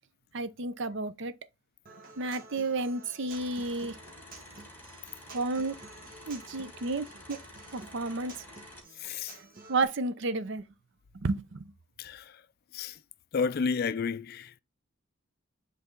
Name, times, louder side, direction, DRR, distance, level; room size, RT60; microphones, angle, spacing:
voice 1, 0.3-1.3 2.2-4.0 5.3-5.8 6.3-7.4 7.7-8.3 9.7-10.6 11.1-11.7, right 3 dB, 60° right, 0.6 m, -31 dB
Human voice / Acoustic guitar, 1.9-9.8, right 3 dB, 45° right, 1.2 m, -51 dB
sound 1, 3.3-8.8, left 1 dB, 10° left, 2.3 m, -50 dB
voice 2, 9.0-9.3 12.0-12.3 12.7-13.0 13.3-14.6, left 5 dB, 50° left, 0.4 m, -31 dB
8.1 x 3.4 x 3.7 m
head